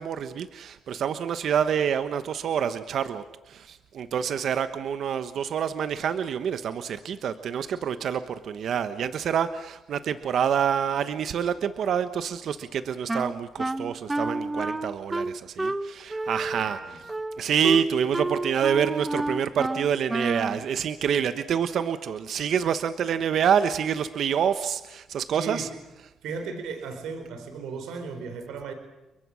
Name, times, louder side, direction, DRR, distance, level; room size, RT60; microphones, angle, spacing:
voice 1, 0.0-17.0 17.4-25.7, right 8 dB, 65° right, 11 dB, 1.2 m, -27 dB
Wind instrument woodwind instrument, 13.1-20.6, right 2 dB, 15° right, 1.0 m, -30 dB
voice 2, 16.5-17.0 25.3-25.7 26.2-28.7, right 4 dB, 85° right, 7 dB, 3.8 m, -36 dB
30.0 x 22.5 x 6.4 m, 0.99 s
cardioid pair, 90°, 0 cm